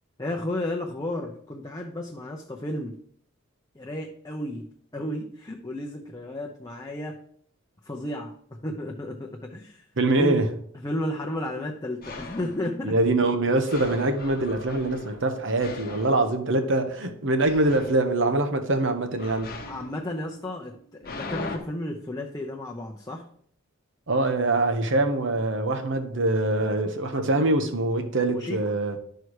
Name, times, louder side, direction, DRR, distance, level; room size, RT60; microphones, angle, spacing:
voice 1, 0.2-3.0 3.7-7.2 7.8-9.9 10.2-10.4 10.7-13.0 19.7-23.3 28.3-28.6, left 1 dB, 20° left, 0.7 m, -33 dB
voice 2, 10.0-10.5 12.8-19.5 24.1-28.9, right 2 dB, 65° right, 1.1 m, -24 dB
sound 1, 12.0-12.7 13.7-16.9 17.4-18.1 19.2-21.6, left 3 dB, 45° left, 1.0 m, -40 dB
11.5 x 4.6 x 4.8 m
head